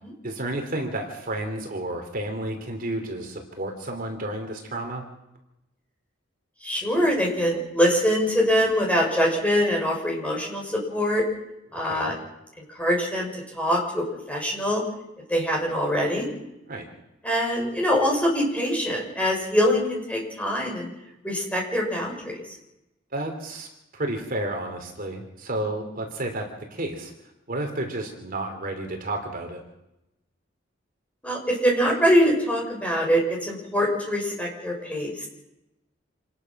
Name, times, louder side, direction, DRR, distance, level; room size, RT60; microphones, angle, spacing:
voice 1, 0.2-5.0 11.8-12.1 16.7-16.8 23.1-23.7 23.9-27.1 27.5-29.6, right 1 dB, 45° right, 4 dB, 3.0 m, -31 dB
voice 2, 6.6-11.2 11.7-12.1 12.7-14.8 15.3-16.3 17.2-20.9 21.2-22.4 31.2-35.3, equal, 5° left, -1 dB, 6.3 m, -24 dB
27.5 x 20.5 x 6.0 m, 0.91 s
head